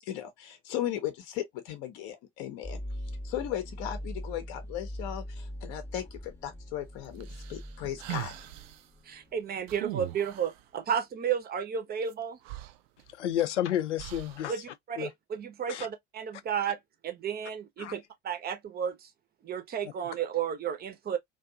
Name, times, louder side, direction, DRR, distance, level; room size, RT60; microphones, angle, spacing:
voice 1, 0.1-2.8 3.2-8.3, left 11 dB, 45° left, 0.7 m, -36 dB
sound 1, 2.6-10.6, equal, 5° left, 0.7 m, -42 dB
sound 2, 7.2-8.8 9.7-10.6 12.1-12.2 12.4-13.4 14.0-14.5, right 16 dB, 60° right, 0.5 m, -40 dB
voice 2, 9.0-12.4 14.5-19.1 19.4-21.2, right 8 dB, 25° right, 0.7 m, -33 dB
voice 3, 13.1-14.5 15.0-15.1 15.7-15.9 17.8-18.0 19.8-19.9, left 11 dB, 80° left, 0.5 m, -31 dB
2.5 x 2.2 x 2.6 m
figure-of-eight pair, 65°, 35 cm